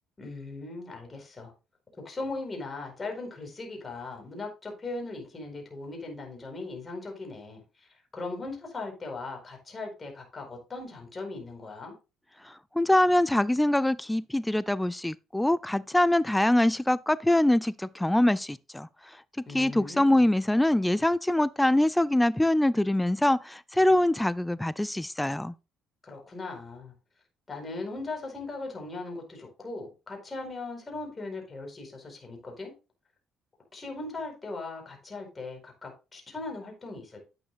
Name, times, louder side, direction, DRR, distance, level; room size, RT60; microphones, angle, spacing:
voice 1, 0.2-1.5 2.0-11.9 19.5-20.2 26.0-26.9 27.5-32.7 33.7-37.2, left 3 dB, 30° left, 4.7 m, -39 dB
voice 2, 12.4-25.5, left 1 dB, 10° left, 0.4 m, -24 dB
10.0 x 8.7 x 2.5 m
hypercardioid pair, 55°, 0 cm